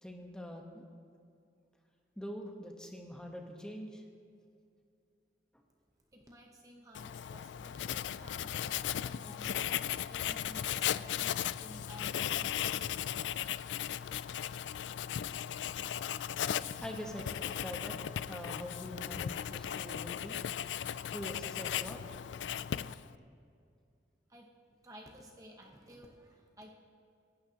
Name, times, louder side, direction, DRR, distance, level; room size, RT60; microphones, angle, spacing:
voice 1, 0.0-0.9 2.2-4.0 16.8-17.9 18.3-20.4 21.1-22.0, equal, 5° left, 1 dB, 1.1 m, -44 dB
voice 2, 6.1-12.9 24.3-24.5 24.8-26.7, equal, 20° right, 1 dB, 0.9 m, -54 dB
Writing, 6.9-23.2, left 10 dB, 85° left, 0.3 m, -37 dB
25.5 x 12.5 x 2.9 m, 2.4 s
head